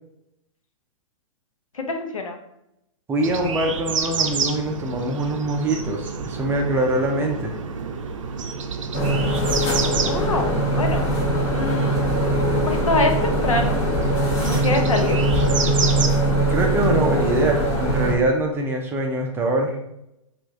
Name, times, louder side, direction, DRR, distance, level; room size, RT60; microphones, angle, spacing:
voice 1, 1.7-2.4 10.0-11.1 11.5-12.1 12.7-13.9 14.4-15.2, left 2 dB, 85° left, 3 dB, 0.7 m, -25 dB
voice 2, 3.1-7.5 16.5-19.8, right 2 dB, 15° right, 1 dB, 0.5 m, -23 dB
sound 1, 3.2-16.1, right 5 dB, 70° right, 0.5 m, -29 dB
sound 2, 8.9-18.1, right 1 dB, 35° left, 1.1 m, -21 dB
3.0 x 2.5 x 3.6 m, 0.81 s
hypercardioid pair, 120°, 17 cm